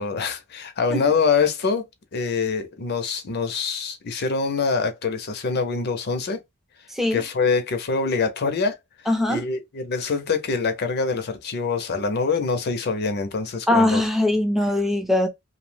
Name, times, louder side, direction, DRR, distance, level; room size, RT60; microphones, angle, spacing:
voice 1, 0.0-1.8 2.1-6.4 7.1-8.8 9.3-14.0, left 4 dB, 50° left, 0.5 m, -24 dB
voice 2, 9.1-9.4 13.7-15.3, left 1 dB, ahead, 0.5 m, -21 dB
2.6 x 2.0 x 3.1 m
head